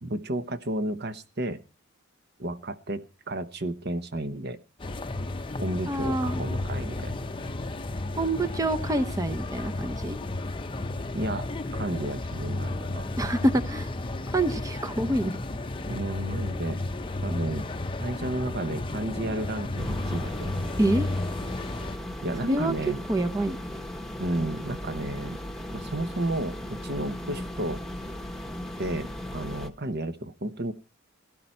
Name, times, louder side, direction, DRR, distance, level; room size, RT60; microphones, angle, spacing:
voice 1, 0.0-1.6 2.4-4.6 5.6-7.2 11.1-13.1 15.9-16.8 17.2-17.7 18.0-20.6 22.2-23.0 24.2-25.4 25.7-27.8 28.8-30.7, right 1 dB, 50° right, 11 dB, 0.9 m, -32 dB
sound 1, 4.8-22.0, left 2 dB, 25° left, 0.7 m, -33 dB
voice 2, 5.9-6.4 8.2-10.2 13.2-13.9 14.3-15.4 20.8-21.1 22.4-22.7 23.1-23.6, right 1 dB, 15° right, 8 dB, 0.7 m, -26 dB
sound 2, 19.8-29.7, left 1 dB, ahead, 1.1 m, -37 dB
16.5 x 12.0 x 4.4 m, 0.32 s
head